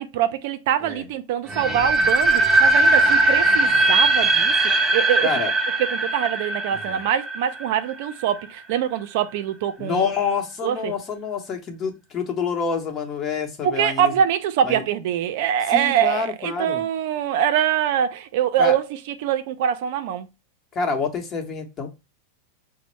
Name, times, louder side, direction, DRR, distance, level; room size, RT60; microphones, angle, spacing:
voice 1, 0.0-5.3 5.8-10.1 10.6-10.9 13.6-20.3, right 9 dB, 65° right, 0.4 m, -24 dB
sound 1, 1.5-8.4, right 2 dB, 25° right, 0.7 m, -20 dB
voice 2, 5.2-5.5 6.7-7.0 9.8-14.1 14.6-14.8 15.7-16.8 18.6-18.8 20.7-21.9, left 5 dB, 30° left, 0.9 m, -27 dB
5.0 x 2.1 x 3.1 m
hypercardioid pair, 120°, 0 cm